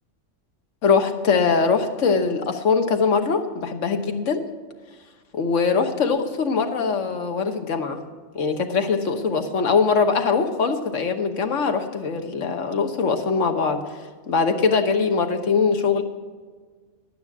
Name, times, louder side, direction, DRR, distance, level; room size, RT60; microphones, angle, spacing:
voice 1, 0.8-4.4 5.3-8.0 8.3-14.0 14.3-16.0, left 5 dB, 80° left, 6 dB, 1.4 m, -22 dB
11.0 x 9.4 x 6.0 m, 1.5 s
omnidirectional pair, 1.3 m